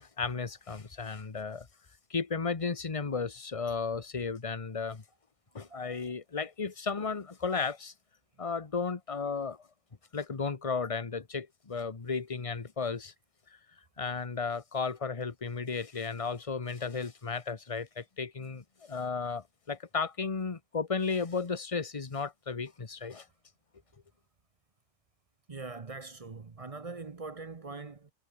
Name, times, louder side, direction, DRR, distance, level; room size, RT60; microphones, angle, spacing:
voice 1, 0.0-1.7 2.1-5.0 5.5-7.9 8.4-9.6 10.1-13.1 14.0-23.3, left 5 dB, 25° left, 1.1 m, -34 dB
voice 2, 25.5-28.1, right 3 dB, 30° right, 0.7 m, -42 dB
omnidirectional pair, 1.5 m